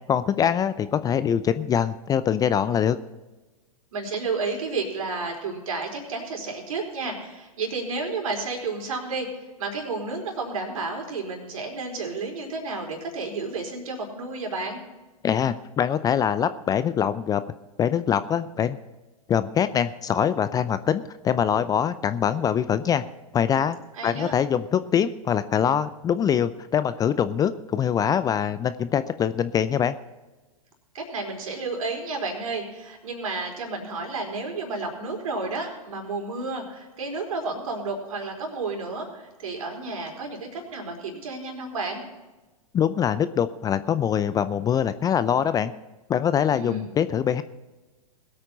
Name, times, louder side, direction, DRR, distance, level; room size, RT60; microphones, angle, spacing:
voice 1, 0.1-3.0 15.2-17.4 17.8-18.8 19.3-23.0 23.3-23.8 24.0-30.0 42.7-45.7 46.1-47.4, left 8 dB, 20° left, 13 dB, 0.5 m, -23 dB
voice 2, 3.9-9.3 9.6-14.8 23.9-24.3 30.9-42.0 46.5-46.9, right 3 dB, 65° right, 2 dB, 4.4 m, -31 dB
20.5 x 8.8 x 4.1 m, 1.1 s
figure-of-eight pair, 100°, 19 cm